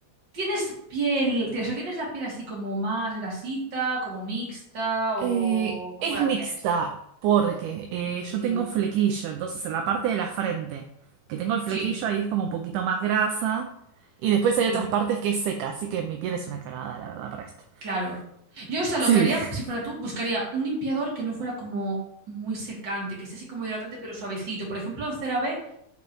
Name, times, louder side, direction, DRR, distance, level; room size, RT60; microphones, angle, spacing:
voice 1, 0.3-6.5 8.0-8.7 11.7-11.9 14.7-14.8 17.8-18.2 18.5-22.0 22.3-25.6, right 2 dB, 35° right, -4 dB, 2.8 m, -30 dB
voice 2, 5.2-5.8 6.0-6.9 7.2-10.8 11.3-13.7 14.2-17.5 19.1-19.5, right 8 dB, 80° right, 4 dB, 1.9 m, -26 dB
11.0 x 4.5 x 3.1 m, 0.73 s
omnidirectional pair, 4.2 m